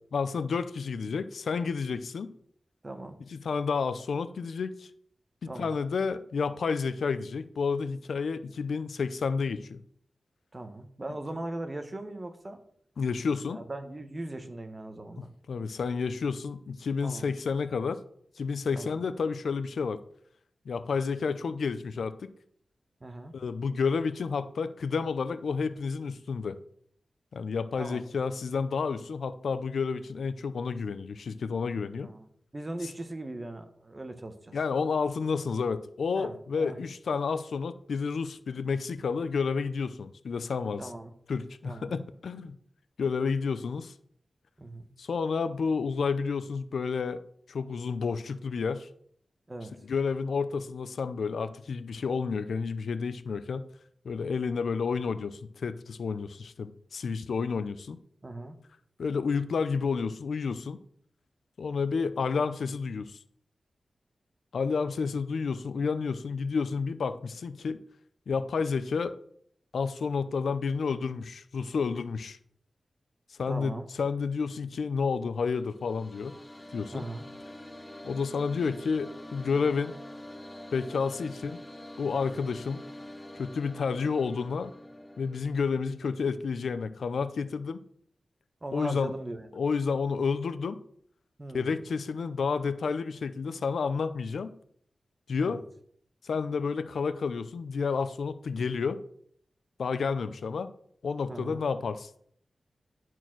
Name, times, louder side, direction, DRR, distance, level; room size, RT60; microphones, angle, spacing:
voice 1, 0.1-2.3 3.3-4.9 5.4-9.8 13.0-13.6 15.2-18.0 18.4-20.0 20.7-22.3 23.3-26.6 27.3-32.1 34.5-40.9 41.3-42.6 43.0-43.9 45.0-47.2 47.5-48.9 49.8-53.7 54.0-58.0 59.0-60.8 61.6-63.2 64.5-67.8 68.3-69.2 69.7-72.4 73.3-76.4 76.7-77.0 78.0-80.0 80.7-81.6 82.0-82.8 83.3-84.7 85.2-87.8 88.7-89.1 89.5-90.8 91.5-94.6 95.3-95.6 96.2-99.0 99.8-100.7 101.0-102.1, left 5 dB, 80° left, 13 dB, 0.5 m, -30 dB
voice 2, 2.8-3.2 5.5-5.8 10.5-12.6 13.5-15.3 17.0-17.3 18.8-19.0 23.0-23.3 27.8-28.0 32.0-32.3 32.5-34.6 36.1-36.8 40.8-41.1 41.6-42.0 44.6-44.9 49.5-49.7 58.2-58.6 73.5-73.9 76.9-77.3 88.6-89.5 91.4-91.8 95.4-95.6 101.3-101.6, right 2 dB, 25° right, 7 dB, 1.1 m, -39 dB
sound 1, 75.5-85.8, left 1 dB, 15° left, 0.9 m, -46 dB
11.0 x 4.6 x 6.1 m, 0.65 s
wide cardioid pair, 125°, 0 cm